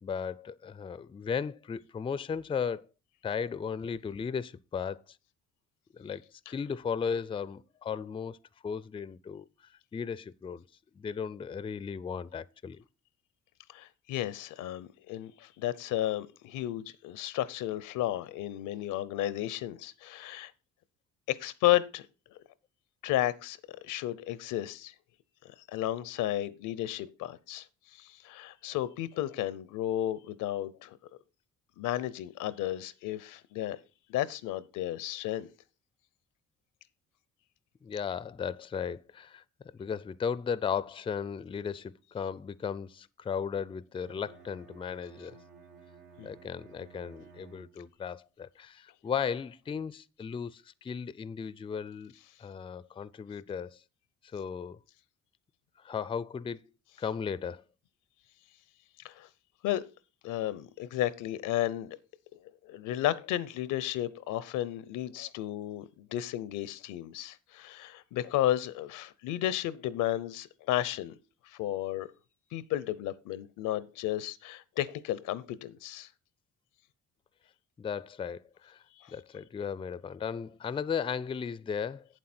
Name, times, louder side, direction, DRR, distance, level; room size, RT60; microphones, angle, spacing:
voice 1, 0.0-2.8 3.2-5.0 5.9-8.4 8.6-9.5 9.9-10.6 10.9-12.8 37.8-39.4 39.7-45.4 46.2-52.1 52.4-53.8 54.3-54.8 55.8-56.6 57.0-57.6 77.8-78.8 79.1-82.1, left 6 dB, 20° left, 0.3 m, -36 dB
voice 2, 13.7-20.5 21.3-22.0 23.0-23.6 23.8-24.9 25.7-27.7 28.0-31.0 31.8-33.8 34.1-35.5 46.2-46.3 59.0-59.3 59.6-59.8 60.2-62.0 62.7-71.1 71.6-72.1 72.5-76.1 79.0-79.1, left 13 dB, 90° left, 0.6 m, -33 dB
Bowed string instrument, 44.0-48.1, right 5 dB, 90° right, 1.6 m, -55 dB
8.2 x 7.6 x 4.3 m
cardioid pair, 90°, 30 cm